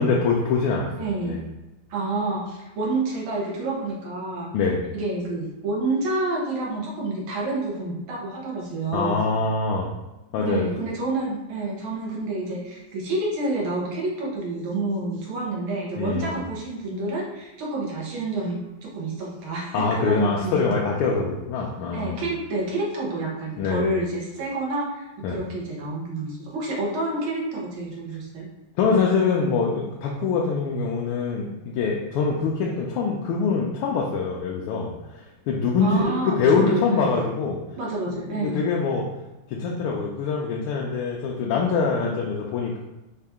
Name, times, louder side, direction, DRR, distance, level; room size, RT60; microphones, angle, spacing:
voice 1, 0.0-1.4 4.5-4.8 8.9-9.9 10.3-10.7 16.0-16.4 19.7-22.2 23.6-23.9 25.2-25.4 28.8-37.6 38.1-39.1 39.5-42.8, left 4 dB, 85° left, -2 dB, 1.5 m, -24 dB
voice 2, 1.0-1.4 1.9-4.5 4.9-9.2 10.4-20.7 21.9-28.5 35.8-37.1 37.8-38.6, right 2 dB, 75° right, -3 dB, 1.9 m, -28 dB
4.8 x 2.8 x 3.5 m, 1.0 s
omnidirectional pair, 2.4 m